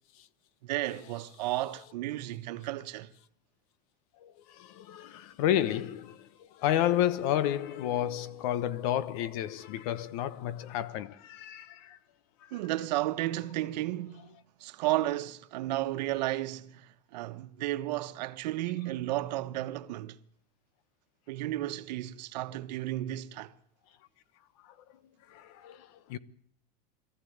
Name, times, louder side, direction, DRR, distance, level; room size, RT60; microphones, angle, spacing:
voice 1, 0.6-3.1 12.5-14.3 14.6-20.2 21.3-23.5, right 15 dB, 85° right, 1.3 m, -33 dB
voice 2, 4.2-6.3 6.5-12.0 25.3-26.2, left 11 dB, 60° left, 1.1 m, -31 dB
22.5 x 14.0 x 9.4 m
supercardioid pair, 170°, 21 cm